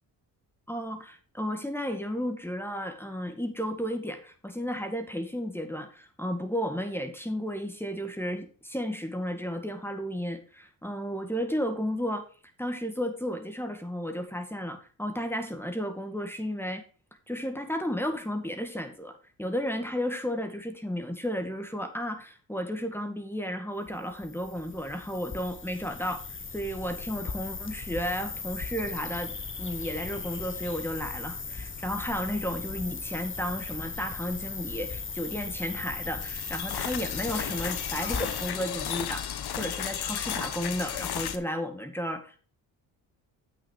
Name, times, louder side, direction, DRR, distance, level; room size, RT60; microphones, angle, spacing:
voice 1, 0.7-12.2 12.6-16.8 17.3-26.2 26.5-29.3 29.6-42.4, equal, 5° left, 7 dB, 1.9 m, -33 dB
sound 1, 23.9-38.5, left 4 dB, 25° left, 1.3 m, -37 dB
sound 2, 36.2-41.4, left 9 dB, 60° left, 1.2 m, -34 dB
8.6 x 6.3 x 4.6 m, 0.40 s
supercardioid pair, 55°, 44 cm